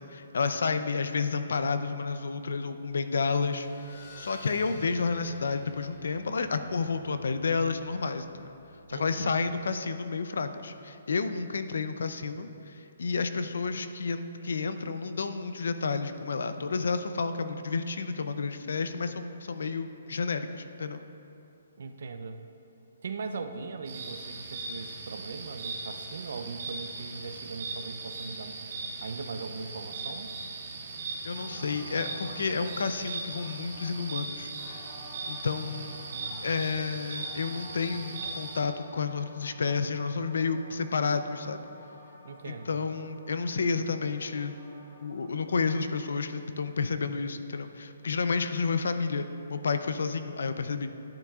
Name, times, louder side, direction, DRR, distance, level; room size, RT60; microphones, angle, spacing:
voice 1, 0.1-8.5 8.9-21.0 31.2-34.8 35.3-36.0 36.4-41.7 42.4-44.6 45.0-50.9, left 4 dB, 70° left, 10 dB, 0.5 m, -31 dB
sound 1, 3.1-10.2, equal, 45° left, 2.0 m, -51 dB
voice 2, 8.9-9.3 21.8-22.4 23.0-28.6 29.0-30.3 35.8-36.5 42.2-42.8, right 4 dB, 55° right, 7 dB, 0.6 m, -40 dB
sound 2, 23.9-38.6, right 3 dB, 40° right, 1.6 m, -39 dB
sound 3, 31.3-32.8 33.2-34.2 34.5-36.6 37.1-46.9, left 1 dB, 30° left, 1.6 m, -51 dB
11.5 x 9.8 x 2.4 m, 2.8 s
hypercardioid pair, 175°, 0 cm